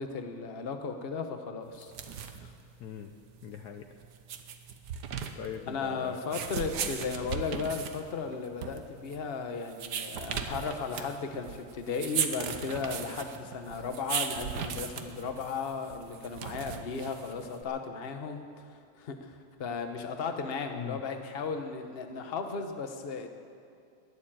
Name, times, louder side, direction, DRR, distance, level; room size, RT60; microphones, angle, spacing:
voice 1, 0.0-2.5 5.7-23.3, left 5 dB, 35° left, 6 dB, 1.1 m, -36 dB
sound 1, 1.7-17.6, right 7 dB, 65° right, 1.4 m, -38 dB
voice 2, 2.8-3.1 3.4-4.0 5.3-6.4 20.7-21.0, left 8 dB, 65° left, 5 dB, 1.2 m, -41 dB
21.5 x 7.2 x 9.0 m, 2.5 s
omnidirectional pair, 2.1 m